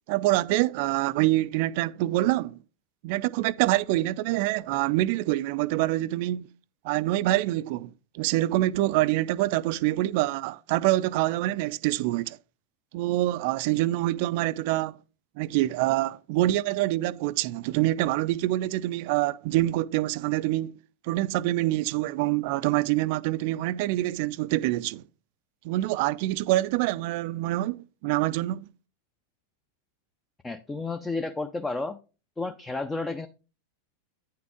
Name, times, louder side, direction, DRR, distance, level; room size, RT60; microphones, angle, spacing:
voice 1, 0.1-2.6 3.0-6.5 6.8-12.4 12.9-15.0 15.4-20.8 21.0-25.0 25.6-28.7, right 16 dB, 45° right, 0.4 m, -26 dB
voice 2, 30.4-32.0 32.4-33.3, left 3 dB, 10° left, 0.5 m, -31 dB
9.3 x 5.8 x 3.6 m
figure-of-eight pair, 90°, 0 cm